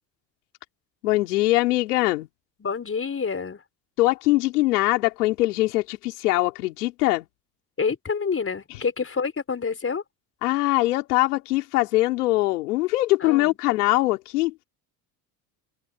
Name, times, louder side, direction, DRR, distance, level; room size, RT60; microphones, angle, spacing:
voice 1, 1.0-2.3 4.0-7.2 10.4-14.5, left 19 dB, 85° left, 4.3 m, -22 dB
voice 2, 2.6-3.6 7.8-10.0 13.2-13.5, left 5 dB, 30° left, 4.9 m, -27 dB
open air
hypercardioid pair, 75°, 45 cm